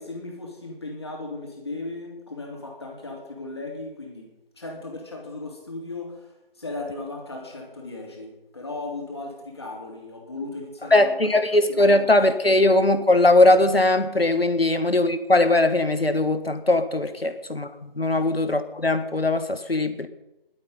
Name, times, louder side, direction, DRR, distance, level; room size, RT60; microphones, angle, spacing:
voice 1, 0.0-4.3 4.6-12.2 14.7-14.8 17.2-17.4 18.1-18.3, left 2 dB, 25° left, 3.0 m, -37 dB
voice 2, 10.9-20.1, left 2 dB, 80° left, 1.6 m, -20 dB
17.5 x 12.0 x 5.5 m
figure-of-eight pair, 165°, 30 cm